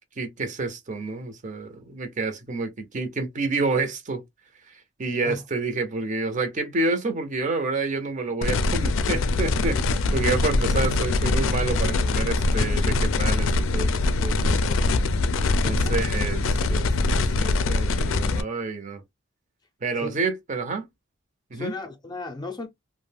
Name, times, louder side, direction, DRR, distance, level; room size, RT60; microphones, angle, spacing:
voice 1, 0.2-4.2 5.0-13.9 14.2-15.0 15.6-19.0 19.8-20.9 21.5-21.7, right 3 dB, 40° right, 0.6 m, -29 dB
sound 1, 8.4-18.4, left 3 dB, 80° left, 0.4 m, -23 dB
voice 2, 21.5-22.7, left 3 dB, 20° left, 0.5 m, -35 dB
2.4 x 2.1 x 3.3 m
head